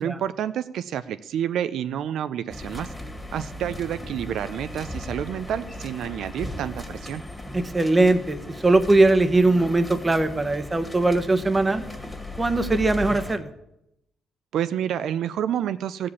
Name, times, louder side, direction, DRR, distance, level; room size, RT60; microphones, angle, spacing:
voice 1, 0.0-2.9 3.3-7.2 14.5-16.1, right 10 dB, 75° right, 12 dB, 0.4 m, -29 dB
sound 1, 2.5-13.3, left 1 dB, 10° left, 2.1 m, -37 dB
voice 2, 7.5-8.4 8.6-11.8 12.4-13.5, right 2 dB, 20° right, 9 dB, 1.0 m, -20 dB
15.0 x 5.1 x 8.3 m, 0.84 s
cardioid pair, 90°, 0 cm